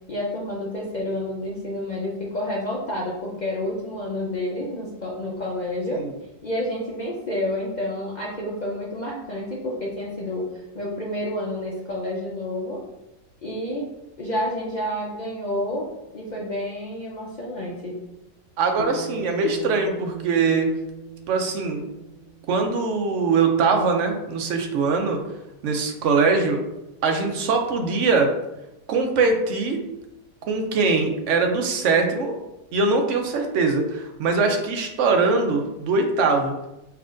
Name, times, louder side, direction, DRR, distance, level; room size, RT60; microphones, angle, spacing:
voice 1, 0.1-6.0 6.4-12.8 13.4-13.8 14.2-15.8 16.1-17.9, left 1 dB, 80° left, -4 dB, 0.4 m, -29 dB
voice 2, 18.6-20.7 21.3-21.8 22.5-25.2 25.6-26.6 27.0-28.3 28.9-29.8 30.5-32.4 32.7-36.5, right 4 dB, 65° right, 4 dB, 0.8 m, -22 dB
Bass guitar, 18.8-23.2, right 3 dB, 60° left, 0.9 m, -39 dB
5.6 x 2.8 x 2.5 m, 0.93 s
omnidirectional pair, 1.7 m